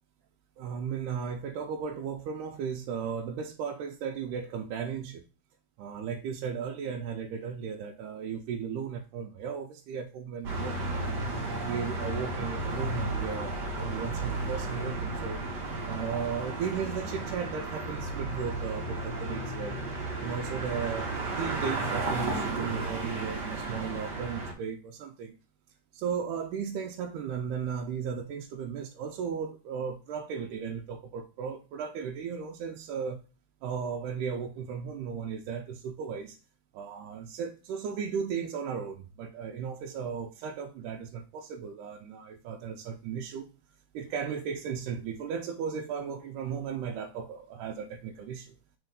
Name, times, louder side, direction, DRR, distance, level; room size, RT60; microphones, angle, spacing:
voice 1, 0.6-5.2 5.8-11.2 11.6-15.4 15.8-19.8 20.2-25.3 25.9-33.2 33.6-36.4 36.7-43.5 43.9-48.5, right 7 dB, 90° right, 2.1 m, -36 dB
sound 1, 10.4-24.5, right 2 dB, 50° right, 1.4 m, -33 dB
4.5 x 4.4 x 5.1 m
omnidirectional pair, 3.6 m